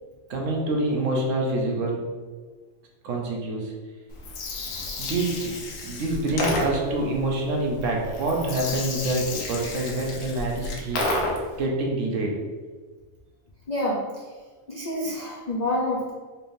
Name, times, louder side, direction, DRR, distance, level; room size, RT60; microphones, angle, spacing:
voice 1, 0.3-2.1 3.0-3.7 5.0-5.5 5.8-12.4, right 2 dB, 65° right, -1 dB, 1.0 m, -26 dB
Gurgling, 4.1-11.6, left 2 dB, 80° left, 1.2 m, -31 dB
voice 2, 13.7-14.2 14.7-16.1, left 1 dB, 60° left, -5 dB, 0.4 m, -27 dB
4.3 x 3.3 x 2.6 m, 1.4 s
omnidirectional pair, 1.5 m